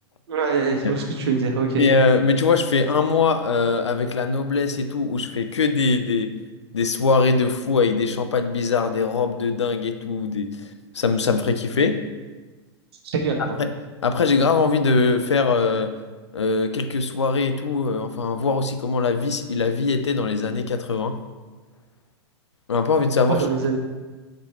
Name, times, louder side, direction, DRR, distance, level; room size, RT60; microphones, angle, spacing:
voice 1, 0.3-1.9 13.0-13.4 23.3-23.8, right 5 dB, 65° right, 2 dB, 1.1 m, -23 dB
voice 2, 1.7-6.3 6.7-10.7 10.9-12.0 13.6-13.7 14.0-15.9 16.3-21.2 22.7-23.5, left 4 dB, 90° left, 8 dB, 0.4 m, -21 dB
5.1 x 4.5 x 4.2 m, 1.3 s
hypercardioid pair, 100°, 14 cm